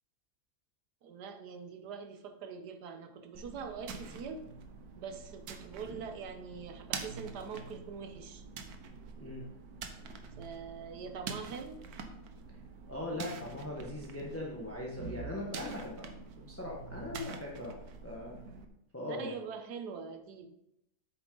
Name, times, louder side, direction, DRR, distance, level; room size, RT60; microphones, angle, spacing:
voice 1, 1.0-4.5 5.0-8.4 9.1-9.3 10.4-11.8 19.0-20.5, right 6 dB, 90° right, 7 dB, 1.5 m, -43 dB
sound 1, 3.3-18.6, right 4 dB, 70° right, 1.3 m, -46 dB
voice 2, 12.9-16.1 16.5-17.7 18.0-18.3 18.9-19.4, left 1 dB, 10° left, -3 dB, 1.2 m, -40 dB
8.5 x 7.0 x 3.9 m, 0.82 s
omnidirectional pair, 1.7 m